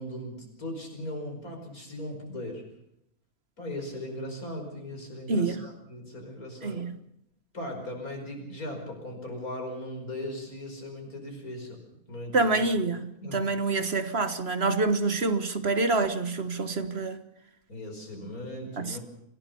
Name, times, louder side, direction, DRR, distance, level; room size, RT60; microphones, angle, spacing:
voice 1, 0.0-2.6 3.6-6.8 7.5-11.8 12.1-12.6 13.2-13.4 17.7-19.0, left 1 dB, 85° left, 5.8 m, -38 dB
voice 2, 6.6-6.9 12.3-17.2 18.8-19.0, right 3 dB, 50° right, 1.5 m, -27 dB
26.0 x 17.0 x 7.0 m
omnidirectional pair, 1.5 m